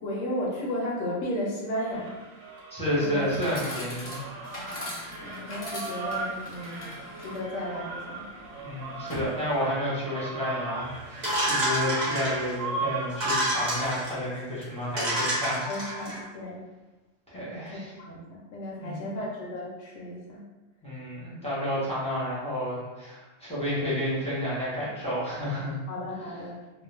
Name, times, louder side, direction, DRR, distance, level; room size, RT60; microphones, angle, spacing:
voice 1, 0.0-2.2 3.0-3.2 5.2-6.8 7.2-8.3 15.7-16.6 17.9-20.4 25.9-26.6, left 1 dB, 70° left, -4 dB, 0.9 m, -34 dB
sound 1, 1.9-13.0, right 3 dB, 80° right, 1.0 m, -38 dB
voice 2, 2.7-4.2 8.6-15.7 17.3-17.9 18.8-19.1 20.8-25.8 26.2-26.4, equal, 5° left, -10 dB, 0.7 m, -31 dB
Chatter / Coin (dropping), 2.8-9.9, left 1 dB, 45° left, 0.7 m, -41 dB
sound 2, 11.2-12.5 13.1-14.1 14.6-14.7 15.0-16.2, right 1 dB, 40° right, 0.8 m, -28 dB
2.4 x 2.0 x 3.2 m, 1.2 s
omnidirectional pair, 1.3 m